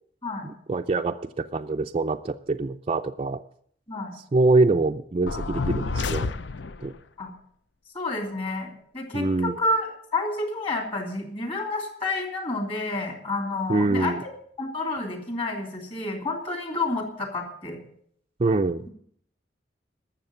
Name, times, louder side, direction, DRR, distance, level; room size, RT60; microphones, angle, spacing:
voice 1, 0.4-3.4 4.3-6.3 6.8-6.9 9.1-9.5 13.7-14.2 18.4-18.9, right 3 dB, 30° right, 4 dB, 0.4 m, -24 dB
sound 1, 5.3-6.9, left 4 dB, 70° left, 0.6 m, -29 dB
voice 2, 7.9-14.3 14.6-17.8, left 2 dB, 30° left, 3 dB, 3.1 m, -29 dB
12.5 x 7.2 x 8.9 m, 0.64 s
head